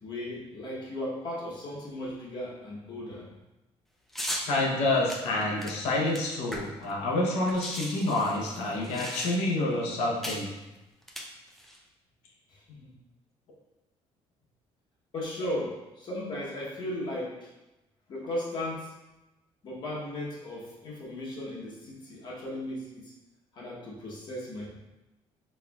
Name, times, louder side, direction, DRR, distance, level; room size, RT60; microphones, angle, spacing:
voice 1, 0.0-3.2 12.5-12.9 15.1-17.5 18.1-18.9 19.6-23.1 23.5-24.7, left 1 dB, 45° left, -5 dB, 0.9 m, -36 dB
sound 1, 4.1-4.5 5.1-6.9 7.2-7.3 7.4-9.6 10.2-10.5 11.0-11.8, equal, ahead, 0.3 m, -37 dB
voice 2, 4.4-10.5, left 2 dB, 85° left, -2 dB, 0.7 m, -28 dB
4.3 x 3.3 x 2.3 m, 1.0 s
cardioid pair, 160°, 11 cm